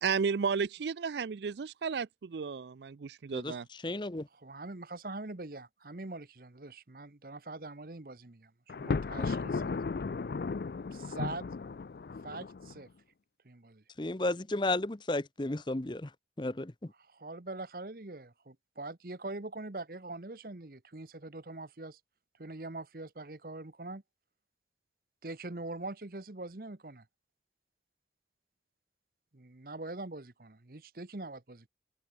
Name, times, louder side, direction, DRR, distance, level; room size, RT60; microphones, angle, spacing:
voice 1, 0.0-3.6, right 5 dB, 75° right, 0.4 m, -33 dB
voice 2, 3.3-4.3 14.0-16.1 16.4-16.9, left 2 dB, 25° left, 0.8 m, -33 dB
voice 3, 4.3-9.7 10.9-11.5 12.2-12.9 13.4-13.8 17.0-22.0 22.4-24.0 25.2-27.1 29.3-31.7, right 2 dB, 55° right, 1.1 m, -43 dB
Thunder, 8.7-12.8, left 4 dB, 60° left, 0.4 m, -35 dB
head